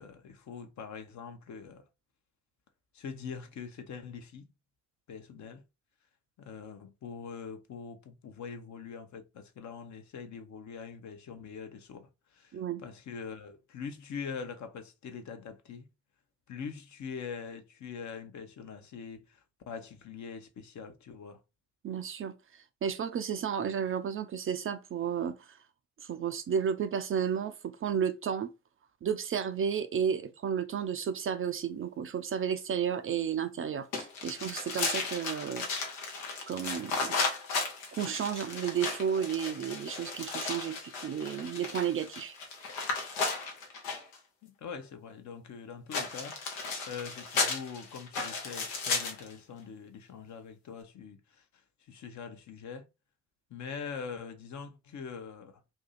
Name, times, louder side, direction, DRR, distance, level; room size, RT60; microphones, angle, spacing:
voice 1, 0.0-1.8 2.9-4.5 5.1-5.6 6.4-15.9 16.5-21.4 44.4-46.4 46.9-52.8 53.5-55.6, left 6 dB, 45° left, 0.8 m, -43 dB
voice 2, 21.8-25.6 26.0-28.5 29.0-35.7 36.5-37.1 37.9-42.3, right 8 dB, 35° right, 0.4 m, -32 dB
sound 1, 33.9-44.2 45.9-49.3, left 4 dB, 85° left, 0.8 m, -35 dB
2.7 x 2.6 x 4.0 m
hypercardioid pair, 45°, 38 cm